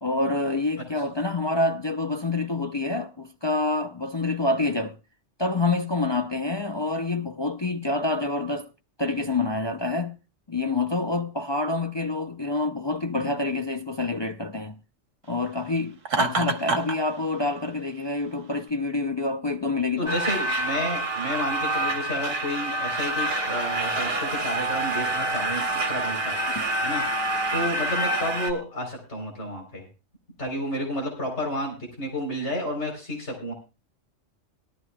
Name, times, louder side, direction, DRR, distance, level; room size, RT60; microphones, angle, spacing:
voice 1, 0.0-5.0 5.4-8.7 9.0-10.2 10.5-14.8 15.3-20.1 26.5-26.7, left 2 dB, 35° left, 0.4 m, -27 dB
Laughter, 16.0-17.0, right 3 dB, 75° right, 1.5 m, -25 dB
voice 2, 20.0-26.4 26.8-27.0 27.5-29.9 30.4-33.5, left 1 dB, 65° left, 3.9 m, -31 dB
sound 1, 20.1-28.5, right 2 dB, 50° right, 1.9 m, -27 dB
19.0 x 13.0 x 2.2 m
omnidirectional pair, 1.3 m